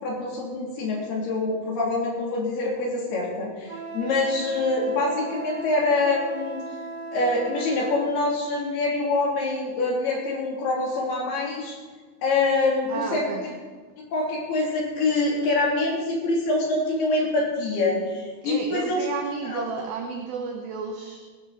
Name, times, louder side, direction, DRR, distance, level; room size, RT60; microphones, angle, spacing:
voice 1, 0.0-6.6 7.1-11.7 12.2-13.3 14.1-19.0 19.5-19.8, left 2 dB, 60° left, -3 dB, 5.0 m, -25 dB
Wind instrument woodwind instrument, 3.7-8.1, right 3 dB, 35° right, 1.9 m, -37 dB
voice 2, 12.9-13.5 18.4-21.2, right 5 dB, 75° right, 4 dB, 2.2 m, -32 dB
19.0 x 12.0 x 4.2 m, 1.4 s
omnidirectional pair, 5.3 m